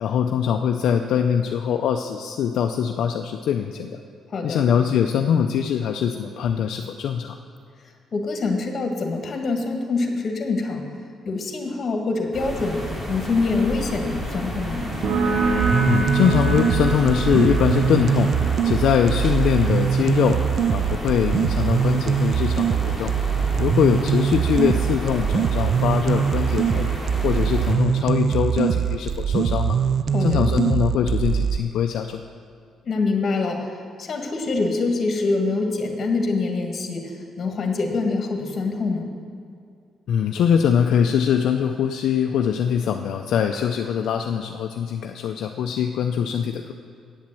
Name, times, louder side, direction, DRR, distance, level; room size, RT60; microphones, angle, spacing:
voice 1, 0.0-4.0 4.4-7.4 15.9-20.4 20.7-23.1 23.6-26.9 27.2-29.8 30.2-32.2 40.1-46.7, left 8 dB, 75° left, 4 dB, 0.5 m, -22 dB
voice 2, 4.3-4.6 8.1-10.9 11.2-14.9 30.1-30.5 32.8-33.7 34.0-37.1 37.4-39.1, left 3 dB, 50° left, 3 dB, 1.6 m, -25 dB
sound 1, 12.3-27.7, equal, 20° right, 3.1 m, -31 dB
sound 2, 15.0-22.3, right 3 dB, 75° right, 1.1 m, -27 dB
sound 3, 15.6-31.6, right 8 dB, 55° right, 0.3 m, -22 dB
8.8 x 7.3 x 7.6 m, 2.3 s
cardioid pair, 90°, 0 cm